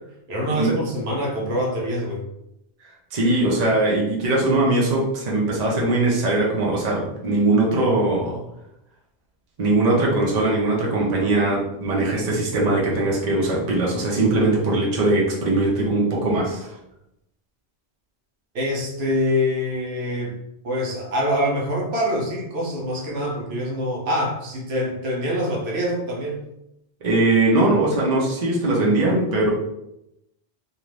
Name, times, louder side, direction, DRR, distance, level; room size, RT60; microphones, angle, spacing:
voice 1, 0.3-2.2 18.5-26.4, equal, 70° right, -2 dB, 0.9 m, -25 dB
voice 2, 3.1-8.4 9.6-16.7 27.0-29.5, right 2 dB, 45° right, -3 dB, 0.7 m, -20 dB
2.5 x 2.4 x 3.1 m, 0.84 s
omnidirectional pair, 1.1 m